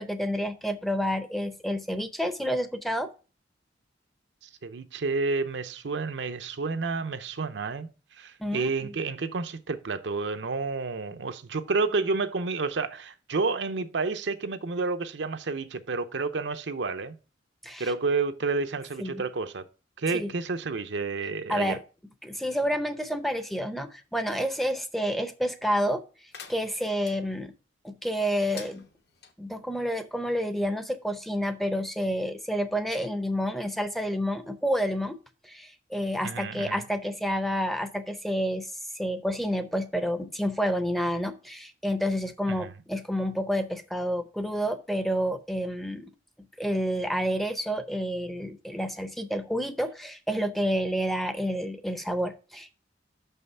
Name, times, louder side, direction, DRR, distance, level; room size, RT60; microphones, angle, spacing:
voice 1, 0.0-3.1 8.4-8.9 17.6-17.9 19.0-19.2 20.1-20.3 21.5-21.8 22.2-26.0 26.5-27.5 27.8-28.8 29.4-35.2 35.4-46.1 46.6-52.8, equal, ahead, 0.6 m, -29 dB
voice 2, 4.6-7.9 8.2-17.2 17.8-19.6 20.0-21.8 36.2-36.8 42.5-42.7, right 4 dB, 70° right, 0.6 m, -30 dB
sound 1, 26.3-27.2 28.4-29.3, left 6 dB, 60° left, 1.1 m, -46 dB
6.3 x 5.5 x 5.4 m
head